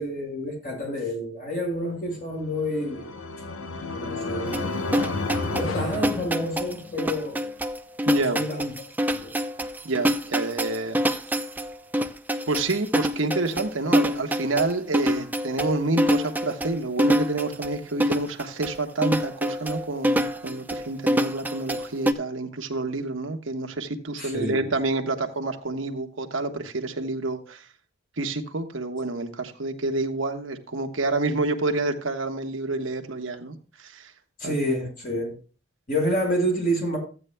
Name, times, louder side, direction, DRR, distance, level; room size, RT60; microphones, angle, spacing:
voice 1, 0.0-3.1 3.9-4.7 5.6-7.5 8.1-8.7 9.1-9.3 24.2-24.7 34.4-35.4 35.9-37.0, equal, 45° left, 5.3 m, -28 dB
sound 1, 2.4-7.0, left 3 dB, 80° left, 0.8 m, -31 dB
sound 2, 4.5-22.1, equal, 10° right, 0.5 m, -26 dB
voice 2, 8.0-8.4 9.8-11.0 12.5-27.7 28.2-34.1 34.4-34.6, right 2 dB, 70° right, 1.2 m, -28 dB
14.5 x 8.9 x 2.2 m
head